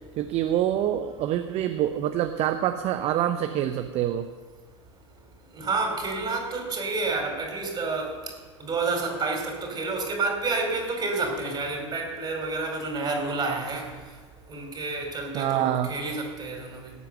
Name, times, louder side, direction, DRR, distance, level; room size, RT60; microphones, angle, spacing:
voice 1, 0.2-4.3 15.3-15.9, right 11 dB, 40° right, 8 dB, 0.8 m, -26 dB
voice 2, 5.5-8.1 8.6-13.9 14.5-16.9, right 3 dB, 25° right, 1 dB, 4.8 m, -29 dB
18.0 x 8.4 x 6.6 m, 1.5 s
hypercardioid pair, 80°, 16 cm